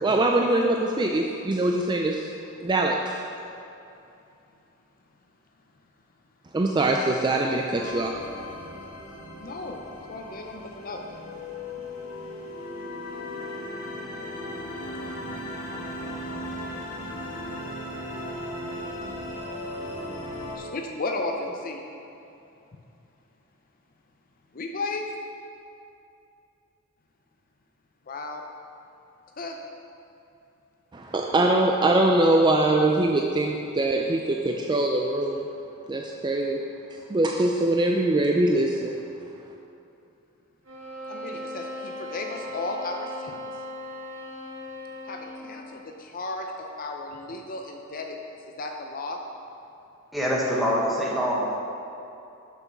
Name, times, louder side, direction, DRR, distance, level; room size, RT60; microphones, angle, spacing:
voice 1, 0.0-2.3 2.6-3.2 6.5-8.1 30.9-35.4 35.9-36.6 37.1-38.9, right 2 dB, 20° right, 1 dB, 0.3 m, -23 dB
sound 1, 7.8-20.6, left 1 dB, 80° left, 1.3 m, -37 dB
voice 2, 9.4-11.4 11.8-21.8 24.5-25.1 28.1-28.4 29.4-29.6 41.1-43.5 45.1-48.2 48.4-49.2, left 2 dB, 40° left, 2 dB, 0.6 m, -37 dB
sound 2, 40.7-45.5, left 1 dB, 65° right, 2.1 m, -38 dB
voice 3, 50.1-51.6, equal, ahead, -5 dB, 1.3 m, -25 dB
6.8 x 6.1 x 5.9 m, 2.7 s
head